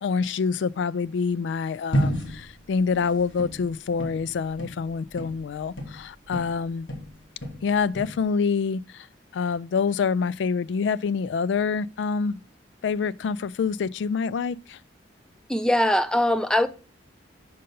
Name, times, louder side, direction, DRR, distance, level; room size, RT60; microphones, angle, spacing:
voice 1, 0.0-6.9 7.6-9.1 9.3-12.4 12.8-14.8, left 5 dB, 70° left, 0.3 m, -26 dB
sound 1, 1.9-6.6 6.9-8.2, equal, 90° left, 1.5 m, -31 dB
voice 2, 15.5-16.7, left 1 dB, 5° left, 0.4 m, -21 dB
5.6 x 5.2 x 5.3 m
head